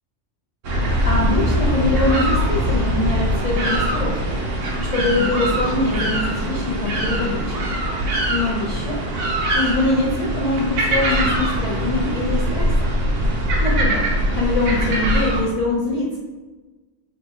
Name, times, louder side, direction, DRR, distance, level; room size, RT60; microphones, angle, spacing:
sound 1, 0.6-15.4, right 1 dB, 80° right, 1.0 m, -22 dB
voice 1, 1.1-4.4 4.8-7.6 8.3-9.0 9.5-12.9 13.6-14.1 14.3-16.2, left 2 dB, 80° left, -3 dB, 0.3 m, -23 dB
3.2 x 2.2 x 4.0 m, 1.2 s
omnidirectional pair, 1.3 m